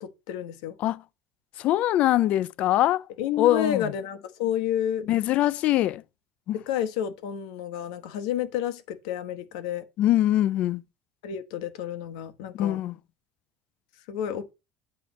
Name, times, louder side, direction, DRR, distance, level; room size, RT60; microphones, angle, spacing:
voice 1, 0.0-0.7 3.2-5.1 6.5-9.8 11.2-12.8 14.1-14.5, left 10 dB, 85° left, 1.0 m, -30 dB
voice 2, 1.6-3.1 3.4-3.9 5.1-6.0 6.5-6.6 10.0-10.8 12.5-12.9, left 14 dB, 40° left, 0.3 m, -23 dB
8.5 x 3.1 x 5.8 m
cardioid pair, 170°, 3 cm